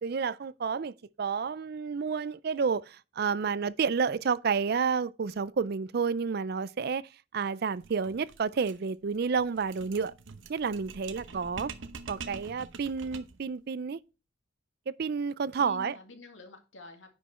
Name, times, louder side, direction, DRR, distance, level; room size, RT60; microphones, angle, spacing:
voice 1, 0.0-10.1 10.5-11.7 12.1-14.0 14.9-15.9, right 5 dB, 55° right, 0.4 m, -30 dB
sound 1, 7.8-13.5, right 4 dB, 80° right, 0.9 m, -45 dB
voice 2, 11.2-11.6 15.6-17.1, left 2 dB, 80° left, 2.2 m, -48 dB
10.0 x 5.2 x 4.3 m
head